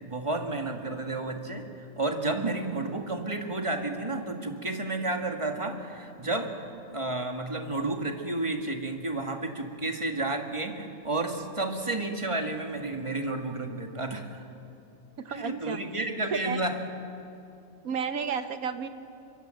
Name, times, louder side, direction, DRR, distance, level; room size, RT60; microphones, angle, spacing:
voice 1, 0.0-6.5 6.9-14.4 15.3-16.8, right 2 dB, 20° right, 4 dB, 1.9 m, -31 dB
voice 2, 15.2-16.0 16.3-16.6 17.8-18.9, right 6 dB, 90° right, 9 dB, 1.6 m, -32 dB
24.5 x 23.0 x 7.8 m, 2.7 s
omnidirectional pair, 1.4 m